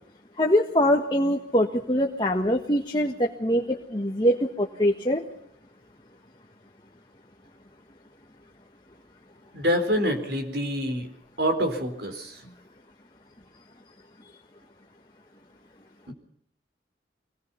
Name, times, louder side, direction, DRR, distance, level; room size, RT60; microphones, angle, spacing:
voice 1, 0.4-5.2, equal, 25° left, 1 dB, 1.5 m, -23 dB
voice 2, 9.5-11.1 11.4-12.4 16.1-16.2, equal, 65° right, 5 dB, 4.3 m, -26 dB
25.0 x 19.5 x 5.7 m, 0.72 s
head